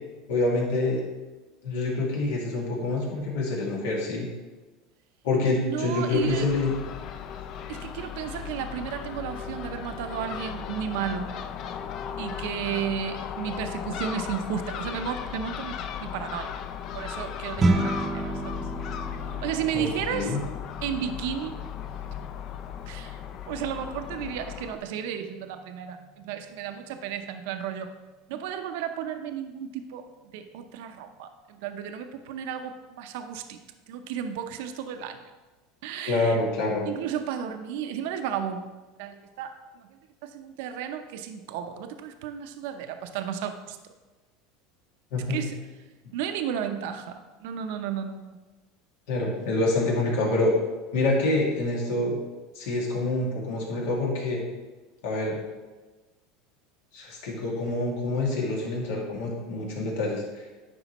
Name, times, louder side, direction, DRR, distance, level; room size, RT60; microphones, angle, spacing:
voice 1, 0.3-1.0 1.6-4.3 5.2-6.7 19.7-20.4 36.0-36.9 45.1-45.4 49.1-50.5 50.9-52.2 52.6-54.4 55.0-55.4 56.9-60.4, left 2 dB, 80° left, -2 dB, 2.0 m, -26 dB
voice 2, 5.6-6.5 7.7-11.3 12.2-16.5 16.9-18.6 19.4-20.4 20.8-21.6 22.9-23.2 23.5-27.9 28.3-30.1 30.3-33.6 33.9-35.2 35.8-36.4 36.9-38.6 39.0-43.8 45.3-45.6 46.1-48.4, right 8 dB, 75° right, 7 dB, 0.6 m, -33 dB
Crow / Gull seagull, 6.1-24.8, left 8 dB, 50° left, 0.5 m, -36 dB
sound 1, 17.6-27.1, right 2 dB, 25° right, 0.8 m, -33 dB
9.8 x 5.0 x 3.0 m, 1.2 s
supercardioid pair, 115°, 0 cm